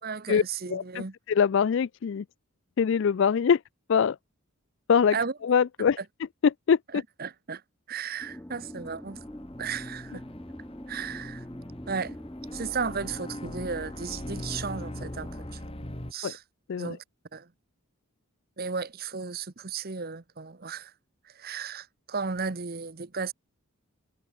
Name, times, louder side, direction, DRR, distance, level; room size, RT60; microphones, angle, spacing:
voice 1, 0.0-1.1 5.1-5.3 6.9-7.6 7.9-9.2 9.6-10.2 10.9-11.4 11.9-12.2 12.5-15.6 16.1-16.4 16.8-17.0 17.3-17.5 18.6-20.9 21.2-23.3, right 5 dB, 45° right, 1.0 m, -34 dB
voice 2, 0.7-2.2 2.8-3.6 3.9-4.2 4.9-5.2 5.4-6.0 6.4-7.0 16.2-16.3 16.7-17.0, left 7 dB, 55° left, 0.3 m, -23 dB
sound 1, 8.2-15.5, left 1 dB, 10° left, 0.7 m, -43 dB
sound 2, 8.7-16.1, left 1 dB, 25° left, 2.5 m, -41 dB
head